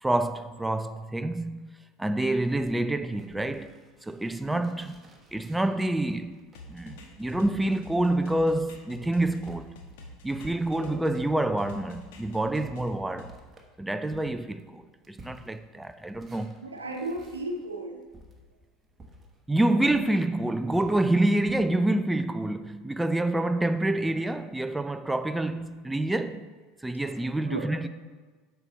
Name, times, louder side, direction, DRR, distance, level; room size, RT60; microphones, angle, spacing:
voice 1, 0.0-1.6 2.0-3.7 4.0-5.0 5.3-6.4 6.7-9.7 10.2-13.4 13.8-16.5 19.5-26.5 26.8-27.9, right 1 dB, 10° right, 0.4 m, -27 dB
sound 1, 2.3-11.1 11.4-21.6, right 1 dB, 25° right, 1.3 m, -55 dB
sound 2, 6.5-11.3 11.6-13.3, left 3 dB, 65° left, 1.2 m, -46 dB
voice 2, 16.6-18.0 27.1-27.2 27.5-27.9, right 2 dB, 85° right, 0.9 m, -35 dB
8.2 x 5.7 x 4.0 m
figure-of-eight pair, 75°, 0 cm